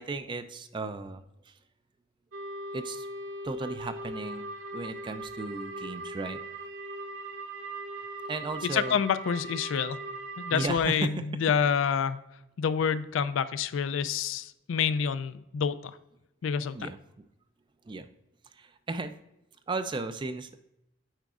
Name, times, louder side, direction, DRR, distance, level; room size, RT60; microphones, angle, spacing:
voice 1, 0.0-1.5 2.7-3.1 3.4-4.5 4.7-6.4 8.3-9.0 10.5-11.4 16.7-17.0 17.8-18.1 18.5-19.2 19.7-20.6, right 3 dB, 25° right, 10 dB, 0.3 m, -35 dB
sound 1, 2.3-10.7, right 1 dB, 90° right, 0.6 m, -39 dB
voice 2, 8.7-10.0 10.4-12.2 12.6-16.0 16.4-16.9, left 7 dB, 85° left, 14 dB, 0.4 m, -28 dB
9.0 x 4.6 x 2.4 m, 0.86 s
head